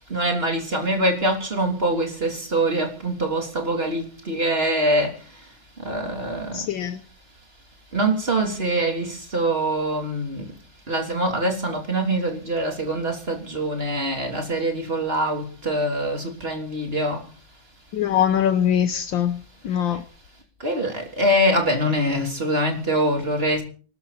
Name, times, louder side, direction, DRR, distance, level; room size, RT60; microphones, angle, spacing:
voice 1, 0.1-5.2 5.8-6.7 7.9-10.5 10.9-17.2 20.6-23.6, right 1 dB, 30° right, 3.5 m, -24 dB
voice 2, 6.5-7.0 17.9-20.0, left 9 dB, 75° left, 1.7 m, -22 dB
24.0 x 13.0 x 4.2 m
omnidirectional pair, 2.1 m